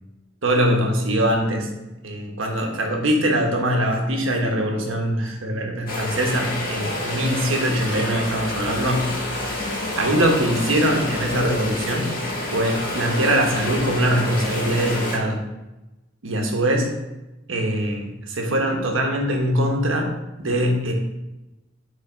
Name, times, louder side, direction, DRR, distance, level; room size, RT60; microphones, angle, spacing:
voice 1, 0.4-1.7 2.0-9.1 9.9-12.1 12.5-15.4 16.2-16.9 17.5-20.1 20.4-20.9, right 1 dB, 80° right, 1 dB, 1.3 m, -22 dB
sound 1, 5.9-15.2, left 2 dB, 45° left, 1.7 m, -28 dB
7.0 x 3.7 x 5.1 m, 1.0 s
head